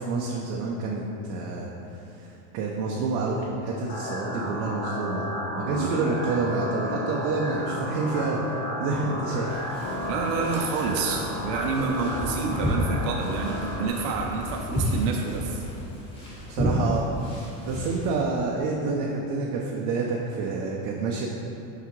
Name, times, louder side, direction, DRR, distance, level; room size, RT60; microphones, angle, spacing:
voice 1, 0.0-2.3 2.5-5.3 5.6-8.5 8.8-9.8 16.5-17.1 17.7-21.3, right 3 dB, 45° right, -2 dB, 0.5 m, -28 dB
sound 1, 3.9-13.9, left 1 dB, 65° left, 1.2 m, -32 dB
voice 2, 5.7-6.1 10.1-15.6, right 4 dB, 85° right, 0 dB, 0.7 m, -28 dB
sound 2, 9.5-18.2, equal, 15° left, 1.2 m, -31 dB
5.8 x 5.6 x 3.1 m, 2.9 s
cardioid pair, 150°, 42 cm